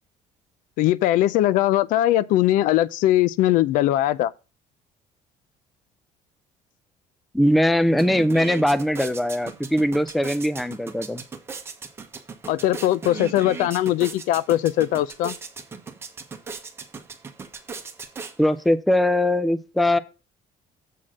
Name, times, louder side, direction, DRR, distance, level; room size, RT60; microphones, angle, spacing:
voice 1, 0.8-4.3 12.5-15.3, left 14 dB, 75° left, 0.5 m, -20 dB
voice 2, 7.3-11.2 18.4-20.0, left 1 dB, ahead, 0.3 m, -21 dB
sound 1, 7.4-7.5 7.8-18.7, right 5 dB, 15° right, 0.9 m, -38 dB
7.4 x 4.2 x 6.2 m
cardioid pair, 175°, 14 cm